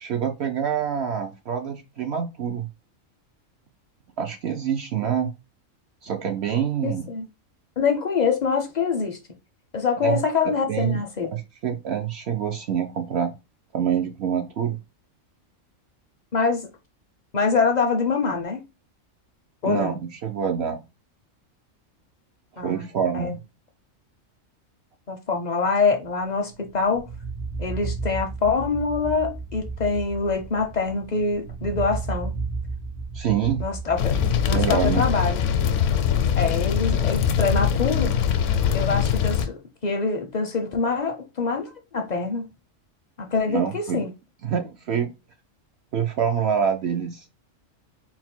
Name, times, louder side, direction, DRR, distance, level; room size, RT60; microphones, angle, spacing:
voice 1, 0.0-2.7 4.2-5.3 6.0-7.1 10.0-10.2 10.7-11.0 11.3-13.3 13.7-14.8 19.7-19.9 20.2-20.8 22.6-23.4 33.1-33.6 34.5-35.0 43.5-44.0 44.4-45.1 45.9-47.2, right 8 dB, 65° right, 0.7 m, -26 dB
voice 2, 6.8-7.3 7.8-9.2 9.7-11.3 16.3-16.7 17.3-18.6 19.6-19.9 22.6-22.9 23.1-23.3 25.1-27.1 27.6-32.3 33.6-34.2 34.5-35.4 36.4-38.1 38.7-42.5 43.2-44.1, left 4 dB, 50° left, 0.5 m, -25 dB
sound 1, 26.5-37.6, right 4 dB, 85° right, 1.6 m, -34 dB
sound 2, 34.0-39.5, left 8 dB, 70° left, 0.9 m, -22 dB
3.9 x 2.1 x 4.3 m
omnidirectional pair, 1.4 m